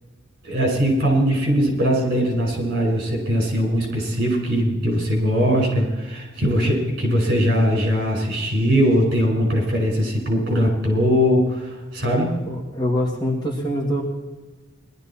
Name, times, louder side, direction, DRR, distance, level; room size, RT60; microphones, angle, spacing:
voice 1, 0.4-12.3, equal, 50° right, 0 dB, 5.1 m, -20 dB
voice 2, 12.5-14.0, equal, 20° left, -1 dB, 2.1 m, -24 dB
19.5 x 12.0 x 4.3 m, 1.2 s
head